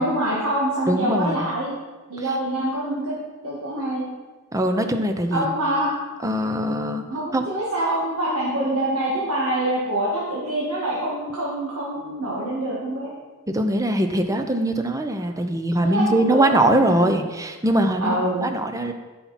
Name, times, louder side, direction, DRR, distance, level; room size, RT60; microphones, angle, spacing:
voice 1, 0.0-1.7 2.1-3.2 3.4-4.1 5.3-5.9 7.1-13.1 15.9-17.1 18.0-18.5, right 1 dB, 90° right, -7 dB, 2.0 m, -25 dB
voice 2, 0.9-1.5 2.2-2.4 4.5-5.5 6.2-7.1 7.3-7.5 13.5-18.9, right 1 dB, 15° right, 7 dB, 0.7 m, -22 dB
13.0 x 5.9 x 4.3 m, 1.3 s
head